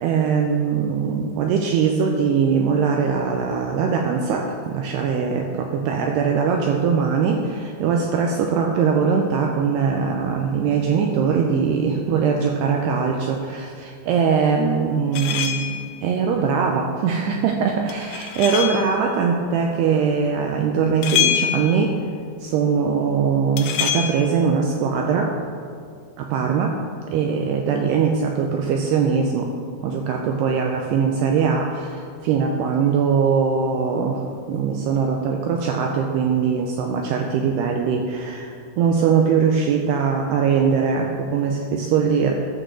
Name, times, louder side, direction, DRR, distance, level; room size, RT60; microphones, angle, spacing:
voice 1, 0.0-22.0 22.4-25.3 26.2-26.8 27.1-29.5 29.8-42.3, right 6 dB, 90° right, 2 dB, 2.3 m, -21 dB
sound 1, 15.1-15.9 17.9-19.0 21.0-21.9 23.6-24.1, left 10 dB, 85° left, 3.2 m, -24 dB
12.5 x 6.3 x 6.9 m, 2.2 s
omnidirectional pair, 5.5 m